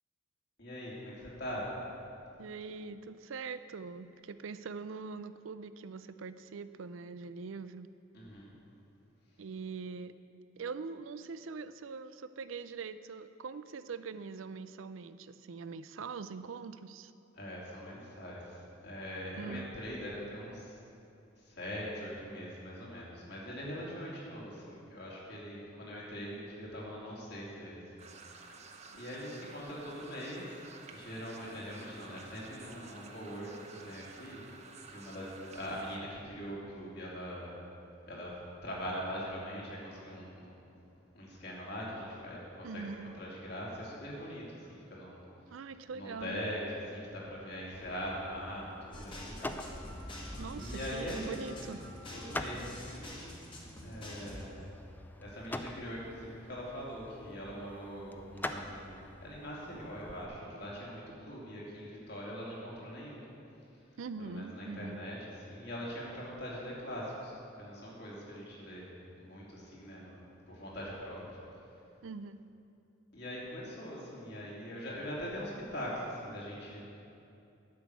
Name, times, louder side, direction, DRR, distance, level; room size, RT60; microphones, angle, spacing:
voice 1, 0.6-1.7 8.1-8.5 17.3-20.8 21.4-27.8 28.2-28.6 28.9-30.5 30.9-34.4 34.9-37.6 38.0-40.6 41.1-45.2 45.5-45.6 45.9-50.2 50.5-51.7 52.1-53.4 53.8-54.7 55.2-63.3 64.2-67.3 67.6-71.4 73.1-76.8, equal, 55° left, -6 dB, 3.0 m, -42 dB
voice 2, 2.4-7.9 9.4-10.2 10.6-17.1 19.4-19.7 28.9-29.0 42.6-43.1 45.5-46.4 50.4-51.8 64.0-65.1 72.0-72.5, right 5 dB, 85° right, 13 dB, 0.4 m, -43 dB
sound 1, 28.0-36.0, right 4 dB, 35° right, 0.8 m, -52 dB
sound 2, 47.7-60.3, left 1 dB, 10° left, 0.4 m, -46 dB
sound 3, 48.9-54.4, left 1 dB, 25° left, 1.6 m, -45 dB
11.5 x 6.2 x 8.2 m, 2.7 s
head